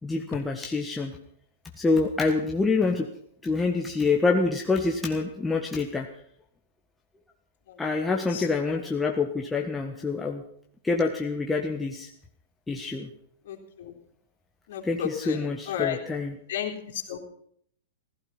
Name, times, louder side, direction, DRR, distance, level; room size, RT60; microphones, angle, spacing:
voice 1, 0.0-1.2 1.8-3.1 3.4-6.1 7.8-10.4 10.8-12.1 12.7-13.1 14.8-16.4, left 3 dB, 10° left, 1 dB, 1.5 m, -26 dB
voice 2, 13.5-13.9 14.7-16.0 16.5-17.2, left 10 dB, 60° left, 2 dB, 3.6 m, -33 dB
16.0 x 14.5 x 5.7 m, 0.65 s
hypercardioid pair, 110°, 0 cm